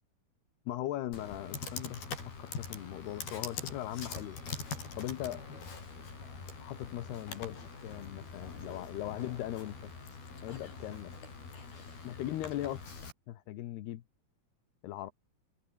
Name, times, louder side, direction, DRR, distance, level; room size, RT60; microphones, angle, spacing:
voice 1, 0.7-4.4 5.0-5.4 6.6-9.9 10.4-11.2 12.0-12.8 13.3-14.0 14.8-15.1, left 13 dB, 90° left, 3.5 m, -39 dB
Computer keyboard, 1.1-13.1, left 4 dB, 70° left, 9.1 m, -44 dB
omnidirectional pair, 4.5 m